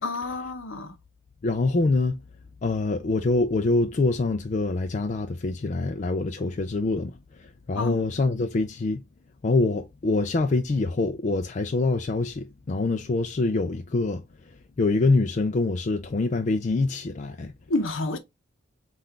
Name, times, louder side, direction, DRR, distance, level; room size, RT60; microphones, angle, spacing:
voice 1, 0.0-1.0 7.8-8.0 17.7-18.2, left 2 dB, 65° left, 0.7 m, -29 dB
voice 2, 1.4-2.2 2.6-9.0 9.4-17.5, left 3 dB, 35° left, 0.4 m, -25 dB
5.7 x 2.4 x 3.3 m
head